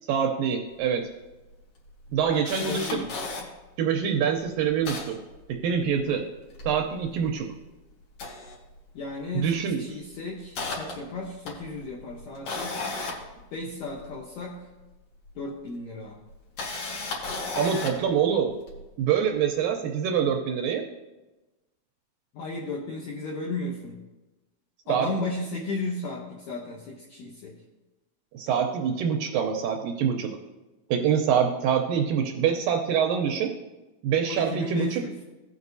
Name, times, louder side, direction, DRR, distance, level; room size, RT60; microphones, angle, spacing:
voice 1, 0.1-1.1 2.1-2.9 3.8-5.2 5.5-6.2 6.6-7.5 9.3-9.8 12.8-12.9 17.6-18.5 19.0-20.8 24.9-25.1 28.3-30.3 30.9-33.5 34.0-35.0, right 7 dB, 80° right, 3 dB, 2.1 m, -25 dB
Camera, 0.8-0.9 1.2-1.3 1.8-3.4 4.0-4.2 4.4-6.0 6.4-7.6 8.0-9.2 9.4-9.7 10.1-14.2 15.3-15.4 16.3-18.1 18.7-18.8, left 3 dB, 55° left, 2.3 m, -35 dB
voice 2, 2.3-3.1 6.1-6.2 8.9-12.8 13.5-14.7 15.3-16.2 22.3-24.0 24.9-27.6 34.2-35.2, left 3 dB, 75° left, -2 dB, 1.6 m, -35 dB
16.5 x 6.2 x 2.7 m, 1.1 s
omnidirectional pair, 4.4 m